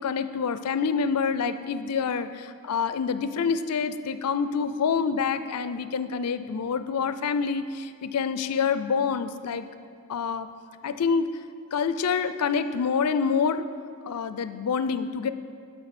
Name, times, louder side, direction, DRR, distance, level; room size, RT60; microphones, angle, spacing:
voice 1, 0.0-9.7 10.1-10.5 10.8-11.3 11.7-13.7 14.0-15.3, left 6 dB, 90° left, 12 dB, 0.4 m, -27 dB
13.0 x 5.7 x 4.2 m, 2.3 s
head